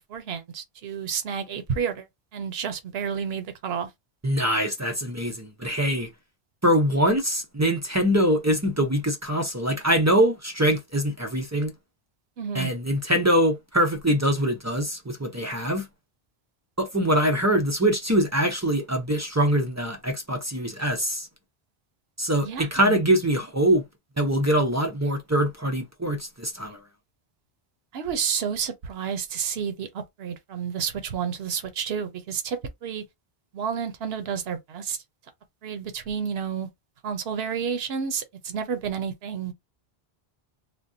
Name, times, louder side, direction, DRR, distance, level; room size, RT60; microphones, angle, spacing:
voice 1, 0.1-2.1 2.3-3.9 12.4-12.7 22.4-23.0 27.9-33.0 33.5-35.0 35.6-36.7 37.0-39.5, right 7 dB, 75° right, 0.9 m, -30 dB
voice 2, 4.2-6.1 6.6-11.7 12.5-15.9 16.8-21.3 22.2-23.8 24.2-26.8, equal, 20° right, 0.5 m, -23 dB
3.5 x 2.2 x 2.6 m
omnidirectional pair, 1.1 m